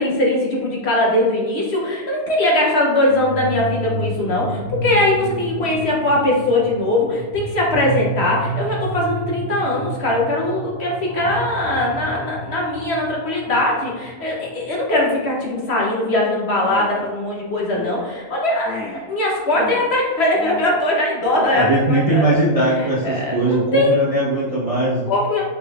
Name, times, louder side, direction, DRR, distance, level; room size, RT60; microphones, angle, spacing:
voice 1, 0.0-22.2 22.6-24.0 25.1-25.4, left 1 dB, 50° left, -3 dB, 0.9 m, -20 dB
sound 1, 3.1-14.9, right 2 dB, 55° right, 1.5 m, -30 dB
Male speech man speaking, 16.6-17.1 17.7-18.1 18.7-19.0 19.5-19.9 20.3-20.7 21.1-21.6, left 2 dB, ahead, 0.8 m, -31 dB
voice 2, 21.5-25.1, right 1 dB, 30° right, -7 dB, 0.7 m, -19 dB
5.2 x 4.0 x 2.3 m, 1.3 s
omnidirectional pair, 1.5 m